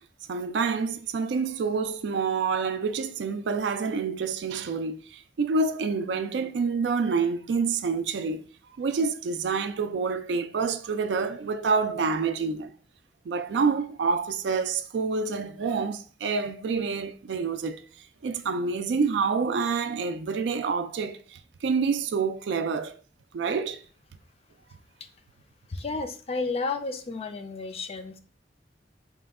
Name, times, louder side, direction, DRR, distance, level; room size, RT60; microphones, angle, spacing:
voice 1, 0.3-8.4 8.8-12.7 13.3-17.8 18.2-22.9 23.3-23.8, right 5 dB, 75° right, 0.4 m, -27 dB
voice 2, 25.7-28.2, left 3 dB, 35° left, 0.4 m, -32 dB
4.2 x 2.2 x 3.5 m
head